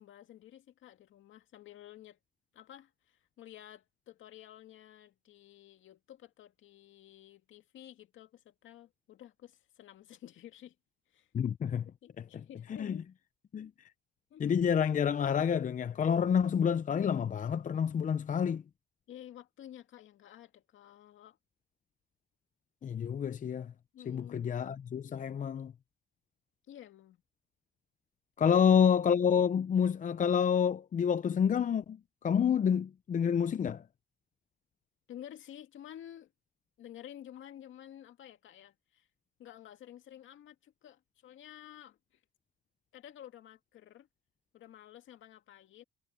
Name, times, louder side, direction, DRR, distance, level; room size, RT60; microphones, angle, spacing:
voice 1, 0.0-2.2 2.5-10.8 11.1-11.3 12.0-13.1 14.3-14.6 19.1-21.4 23.9-24.5 26.7-27.2 28.4-28.7 35.1-36.3 36.8-39.1 39.4-42.2 42.9-44.1 44.5-45.8, left 11 dB, 75° left, 2.2 m, -52 dB
voice 2, 11.3-11.9 12.2-12.4 12.8-13.0 13.5-13.7 14.4-18.6 22.8-23.7 24.1-25.7 28.4-33.8, left 7 dB, 40° left, 0.6 m, -28 dB
cardioid pair, 90°, 20 cm